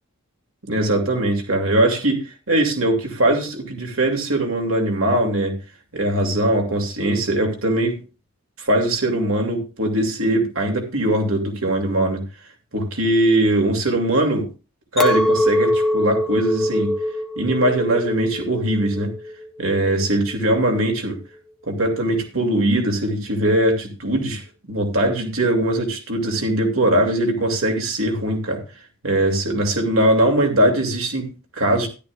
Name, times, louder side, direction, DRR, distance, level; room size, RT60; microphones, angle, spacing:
voice 1, 0.6-5.6 5.9-8.0 8.6-12.2 12.7-14.5 14.9-16.9 17.4-19.1 19.6-21.2 21.7-24.4 24.7-28.6 29.0-31.9, right 1 dB, 75° right, 3 dB, 2.7 m, -21 dB
Chink clink, 15.0-20.3, left 1 dB, ahead, 0.9 m, -23 dB
13.5 x 11.5 x 2.5 m, 0.32 s
head